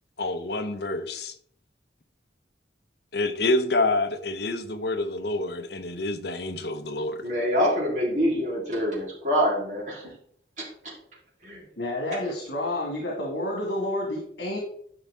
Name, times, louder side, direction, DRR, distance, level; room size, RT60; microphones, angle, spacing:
voice 1, 0.2-1.3 3.1-7.2, left 2 dB, 70° left, 0.9 m, -27 dB
voice 2, 7.2-10.0 10.6-10.9 11.4-11.6, equal, 45° right, 3.6 m, -26 dB
voice 3, 11.8-14.6, left 1 dB, 85° left, 2.1 m, -29 dB
11.0 x 5.6 x 3.7 m
head